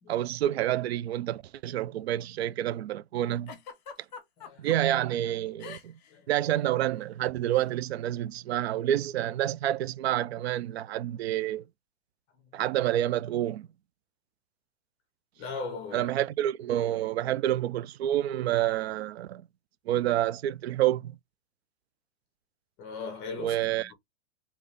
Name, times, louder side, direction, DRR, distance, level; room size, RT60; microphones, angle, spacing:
voice 1, 0.1-3.5 4.6-6.0 6.3-11.6 12.5-13.7 15.9-19.4 19.9-21.2 23.4-23.9, right 12 dB, 65° right, 0.4 m, -28 dB
Giggle, 3.5-4.8 5.6-6.1 6.4-6.6 7.5-7.7, left 5 dB, 40° left, 1.1 m, -44 dB
voice 2, 4.4-4.7 6.1-6.3 12.4-12.6 15.4-16.1 22.8-23.9, left 4 dB, 20° left, 0.9 m, -39 dB
3.8 x 3.0 x 3.3 m
supercardioid pair, 180°, 34 cm